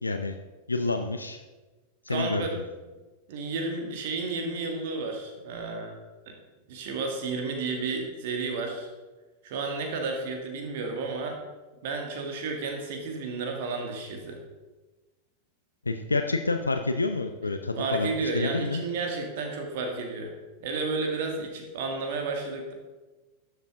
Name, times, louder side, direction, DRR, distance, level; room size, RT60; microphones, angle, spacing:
voice 1, 0.0-0.4 0.7-1.4 2.0-2.6 15.9-18.8, left 3 dB, 80° left, 6 dB, 0.5 m, -28 dB
voice 2, 2.1-2.5 3.3-6.0 6.7-8.9 9.4-11.4 11.8-14.4 17.8-20.3 20.6-22.7, right 3 dB, 50° right, 3 dB, 1.9 m, -32 dB
12.0 x 7.3 x 3.7 m, 1.2 s
figure-of-eight pair, 90°, 0 cm